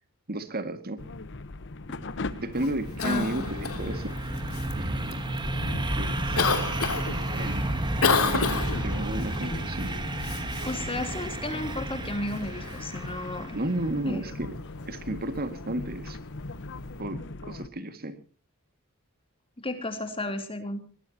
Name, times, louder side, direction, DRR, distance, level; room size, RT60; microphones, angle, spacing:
voice 1, 0.3-1.0 2.3-4.2 4.8-5.2 6.0-6.5 7.3-7.7 8.2-9.9 13.5-14.6 14.9-16.2 17.0-18.2, right 1 dB, 45° right, 9 dB, 2.1 m, -33 dB
sound 1, 1.0-17.7, left 2 dB, 60° left, 1.1 m, -40 dB
sound 2, 2.1-13.8, right 1 dB, 20° right, 2.4 m, -32 dB
Cough, 2.5-17.0, left 4 dB, 75° left, 3.0 m, -33 dB
voice 2, 3.0-3.5 10.6-13.6 14.1-14.3 19.6-20.8, left 1 dB, 25° left, 7 dB, 3.4 m, -33 dB
23.0 x 19.5 x 2.9 m, 0.39 s
head